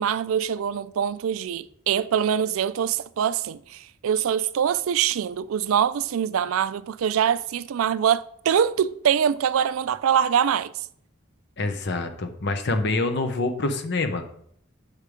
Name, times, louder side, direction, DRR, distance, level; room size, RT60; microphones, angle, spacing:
voice 1, 0.0-10.7, right 8 dB, 85° right, 0.4 m, -24 dB
voice 2, 11.6-14.2, left 2 dB, 55° left, 0.8 m, -26 dB
6.5 x 5.1 x 4.9 m
head